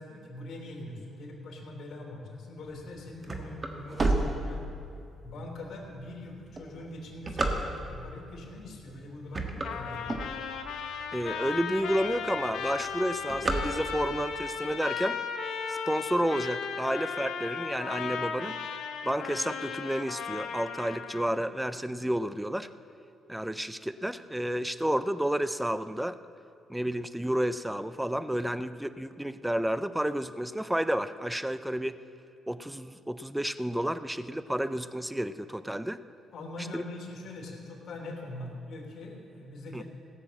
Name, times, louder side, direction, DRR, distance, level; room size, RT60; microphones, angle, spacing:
voice 1, 0.0-4.7 5.2-10.2 36.3-39.8, left 2 dB, 60° left, -1 dB, 3.0 m, -42 dB
sound 1, 2.8-5.1 5.6-5.7 6.4-8.1 8.7-9.0 9.2-10.8 11.3-11.4 11.6-11.7 12.0-12.4 12.6-14.2, right 2 dB, 30° right, 1.4 m, -31 dB
Trumpet, 9.6-21.3, left 6 dB, 80° left, 1.0 m, -36 dB
voice 2, 11.1-15.2 15.7-18.6 19.0-22.7 23.3-26.2 26.7-32.0 32.5-36.0 36.7-36.8 39.7-39.8, equal, 5° right, 13 dB, 0.5 m, -31 dB
16.0 x 6.8 x 7.6 m, 2.6 s
cardioid pair, 90°, 0 cm